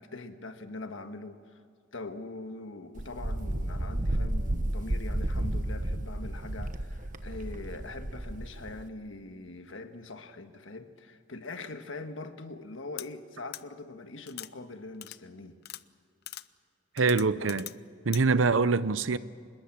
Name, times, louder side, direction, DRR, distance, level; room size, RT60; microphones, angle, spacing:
voice 1, 0.0-1.6 1.9-15.6, left 2 dB, 80° left, 1.5 m, -42 dB
Wind, 3.0-8.9, right 1 dB, 45° right, 1.2 m, -32 dB
sound 1, 13.0-13.1 13.5-13.6 14.3-14.5 15.0-15.2 15.6-15.8 16.3-16.4 17.0-17.7 18.1-18.2, left 14 dB, 55° left, 0.6 m, -41 dB
voice 2, 17.0-17.7 18.0-19.2, right 4 dB, 80° right, 0.8 m, -24 dB
25.5 x 21.0 x 7.5 m
head